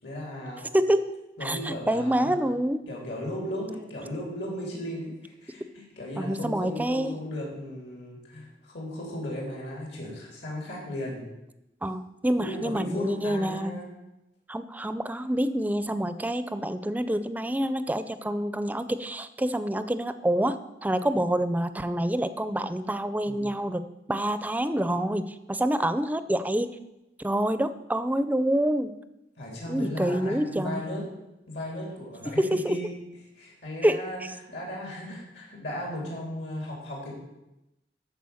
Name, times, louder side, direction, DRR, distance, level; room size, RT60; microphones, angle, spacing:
voice 1, 0.0-0.6 1.4-2.5 2.9-11.2 12.4-13.9 23.2-23.4 29.4-31.0 31.5-32.9 33.4-34.2 34.5-37.1, left 1 dB, 80° left, -2 dB, 3.5 m, -36 dB
voice 2, 0.7-1.1 1.4-2.8 6.2-7.1 11.8-13.8 14.5-26.7 27.2-28.9 29.7-30.8 32.3-32.9 33.8-34.1, right 1 dB, 10° right, 12 dB, 0.4 m, -27 dB
12.5 x 4.6 x 7.0 m, 0.93 s
head